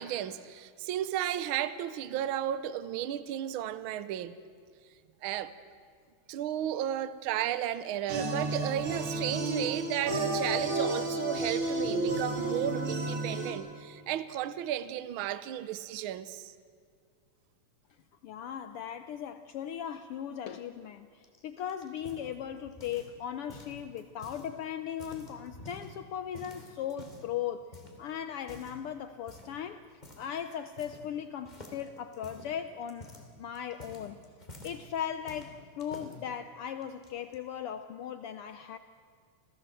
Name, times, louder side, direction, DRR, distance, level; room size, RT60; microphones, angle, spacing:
voice 1, 0.0-4.3 5.2-5.5 6.3-16.5, right 11 dB, 90° right, 1.1 m, -33 dB
sound 1, 8.1-13.5, right 2 dB, 45° right, 3.5 m, -32 dB
voice 2, 18.2-27.7 28.0-29.8 30.2-33.1 33.4-34.2 34.6-38.8, left 9 dB, 85° left, 1.2 m, -38 dB
sound 2, 21.2-23.2 23.5-24.5 24.9-25.9 26.3-27.3 27.7-28.0 28.4-28.8 29.3-29.6 30.0-30.3 30.5-31.2 31.4-34.8 35.3-36.1 36.8-37.4, left 1 dB, 15° left, 2.7 m, -49 dB
28.0 x 17.0 x 7.7 m
omnidirectional pair, 3.4 m